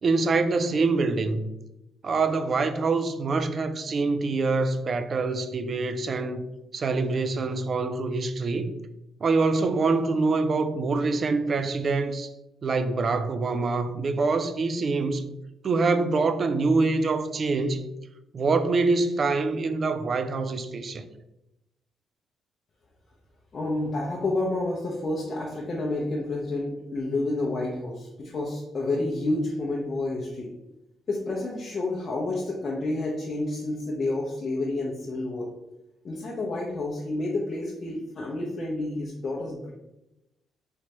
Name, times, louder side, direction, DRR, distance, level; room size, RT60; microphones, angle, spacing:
voice 1, 0.0-1.5 2.0-6.4 6.7-8.7 9.2-12.3 12.6-15.4 15.6-17.9 18.3-21.1, right 3 dB, 45° right, 0.3 m, -25 dB
voice 2, 23.5-30.5 31.1-35.5 36.0-39.7, left 2 dB, 45° left, 0.6 m, -29 dB
3.2 x 3.0 x 2.9 m
cardioid pair, 90°, 0 cm